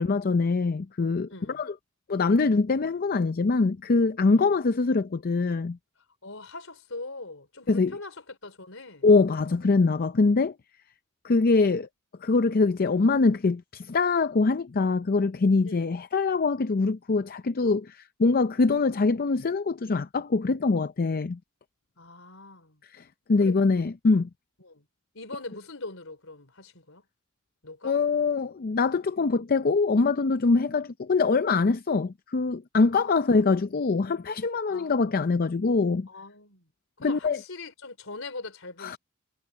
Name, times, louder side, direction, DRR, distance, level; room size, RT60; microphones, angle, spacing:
voice 1, 0.0-1.7 2.1-5.8 7.7-7.9 9.0-10.5 11.2-11.9 12.2-21.4 22.9-23.0 23.3-24.3 27.8-36.1 37.0-37.4 38.8-39.0, left 4 dB, 45° left, 0.5 m, -23 dB
voice 2, 1.3-1.6 4.4-4.5 6.2-9.1 15.6-15.9 22.0-22.8 23.4-23.6 24.6-24.8 25.1-27.0 27.6-28.0 32.9-33.6 34.7-35.3 36.1-36.7 37.0-39.0, left 3 dB, 70° left, 4.7 m, -42 dB
head